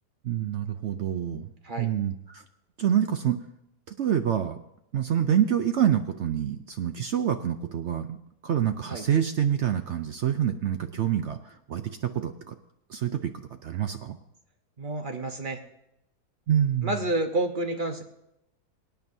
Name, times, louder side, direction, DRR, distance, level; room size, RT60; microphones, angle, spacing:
voice 1, 0.2-1.5 1.8-2.4 2.8-3.4 4.0-4.6 4.9-8.2 8.4-12.5 12.9-13.3 13.6-14.2 16.5-16.9, right 9 dB, 70° right, 8 dB, 0.6 m, -26 dB
voice 2, 14.8-15.6 16.8-18.0, right 2 dB, 40° right, 5 dB, 0.9 m, -29 dB
24.0 x 9.3 x 2.7 m, 0.83 s
omnidirectional pair, 1.8 m